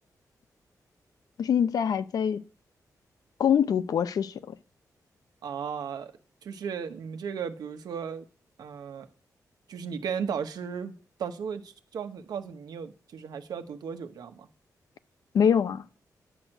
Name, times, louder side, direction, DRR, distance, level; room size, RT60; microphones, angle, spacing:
voice 1, 1.4-2.4 3.4-4.5 15.3-15.8, left 8 dB, 70° left, 0.7 m, -24 dB
voice 2, 5.4-6.1 6.4-8.2 8.6-9.1 9.7-14.5, right 7 dB, 85° right, 1.2 m, -35 dB
10.0 x 6.4 x 8.9 m
wide cardioid pair, 160°, 7 cm